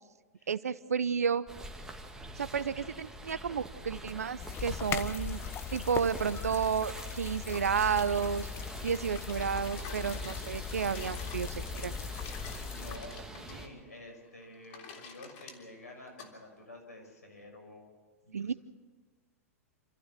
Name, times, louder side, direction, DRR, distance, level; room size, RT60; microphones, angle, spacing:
voice 1, 0.5-1.4 2.4-5.4 5.7-8.5 8.8-12.0 18.3-18.5, right 6 dB, 80° right, 16 dB, 0.8 m, -31 dB
sound 1, 1.5-13.7, right 1 dB, 5° right, 2.6 m, -45 dB
voice 2, 2.4-2.9 12.4-17.9 18.2-18.6, left 1 dB, 85° left, 4 dB, 6.2 m, -50 dB
sound 2, 4.4-13.0, left 7 dB, 30° left, 1.3 m, -39 dB
sound 3, 7.4-16.3, left 6 dB, 50° left, 3.4 m, -51 dB
28.0 x 14.5 x 7.5 m, 1.4 s
hypercardioid pair, 105°, 8 cm